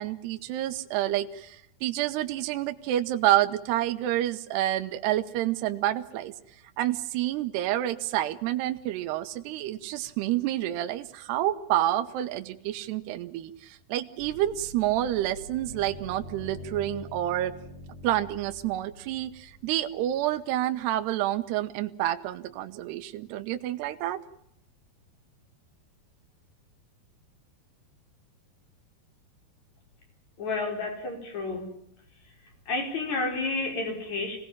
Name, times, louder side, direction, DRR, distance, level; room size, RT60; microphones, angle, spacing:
voice 1, 0.0-6.3 6.8-17.5 18.0-24.2, right 13 dB, 80° right, 8 dB, 3.1 m, -28 dB
sound 1, 14.2-20.7, left 1 dB, 25° left, 4.9 m, -45 dB
voice 2, 30.4-31.7 32.7-34.4, left 3 dB, 45° left, 3 dB, 6.2 m, -30 dB
26.5 x 19.0 x 7.3 m, 0.76 s
omnidirectional pair, 4.8 m